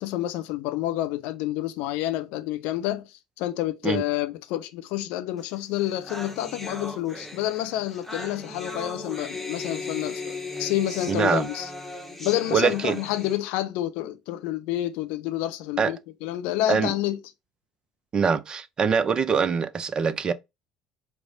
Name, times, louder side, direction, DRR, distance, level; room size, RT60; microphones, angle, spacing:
voice 1, 0.0-11.7 12.2-17.2, left 14 dB, 60° left, 0.5 m, -29 dB
sound 1, 5.5-5.6 5.8-13.4, left 2 dB, 5° left, 1.0 m, -37 dB
voice 2, 11.1-11.5 12.5-13.0 15.8-15.9 16.7-16.9 18.1-20.3, right 6 dB, 30° right, 0.4 m, -23 dB
4.6 x 2.0 x 3.6 m
figure-of-eight pair, 60°, 3 cm